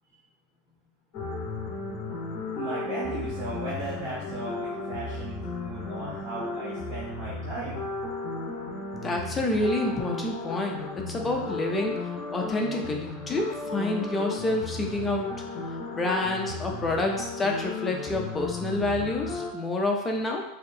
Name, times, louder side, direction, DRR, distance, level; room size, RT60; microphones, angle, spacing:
sound 1, 1.1-19.5, left 3 dB, 35° left, 0.8 m, -34 dB
voice 1, 2.5-7.8, right 2 dB, 35° right, -9 dB, 0.9 m, -36 dB
voice 2, 9.0-12.0 12.3-15.3 15.9-20.4, left 2 dB, 10° left, 1 dB, 0.4 m, -28 dB
4.2 x 2.7 x 2.6 m, 0.84 s
supercardioid pair, 175°, 0 cm